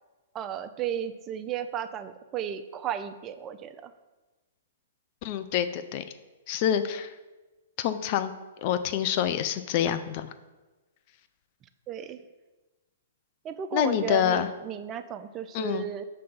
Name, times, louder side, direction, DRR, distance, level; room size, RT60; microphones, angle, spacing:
voice 1, 0.3-3.9 11.9-12.2 13.4-16.0, right 9 dB, 25° right, 11 dB, 0.3 m, -34 dB
voice 2, 5.2-6.0 6.5-7.1 7.8-8.3 8.6-10.3 13.7-14.5 15.5-15.9, left 10 dB, 45° left, 10 dB, 0.4 m, -26 dB
5.2 x 3.3 x 5.5 m, 1.2 s
hypercardioid pair, 125°, 0 cm